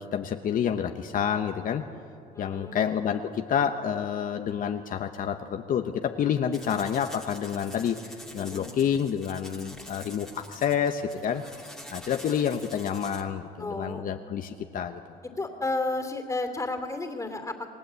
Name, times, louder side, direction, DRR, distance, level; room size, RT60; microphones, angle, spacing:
voice 1, 0.0-1.8 2.4-8.0 8.3-11.6 11.9-15.0, left 8 dB, 55° left, 5 dB, 1.1 m, -28 dB
voice 2, 2.3-2.9 8.4-8.7 13.6-14.0 15.4-17.7, left 2 dB, 20° left, 6 dB, 2.9 m, -32 dB
sound 1, 6.5-13.2, left 1 dB, 5° left, 2.6 m, -46 dB
28.0 x 19.5 x 8.3 m, 2.5 s
cardioid pair, 110°, 17 cm